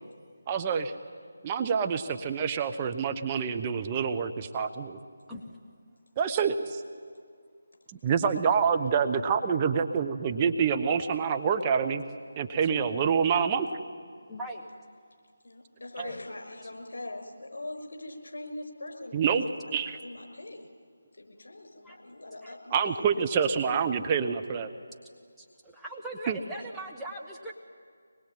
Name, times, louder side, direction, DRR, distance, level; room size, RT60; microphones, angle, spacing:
voice 1, 0.5-0.9 1.4-5.0 6.2-6.8 8.0-12.0 12.4-13.7 19.1-19.4 19.7-20.0 22.7-24.7 26.3-26.4, right 6 dB, 20° right, 6 dB, 0.9 m, -27 dB
voice 2, 14.3-14.7 16.0-16.2 21.8-22.0 22.4-22.5 25.4-27.5, right 1 dB, ahead, -5 dB, 1.3 m, -40 dB
voice 3, 15.4-19.7 20.0-20.7 21.1-23.0, left 2 dB, 65° left, 5 dB, 5.6 m, -42 dB
24.5 x 21.0 x 9.3 m, 2.1 s
figure-of-eight pair, 160°, 0 cm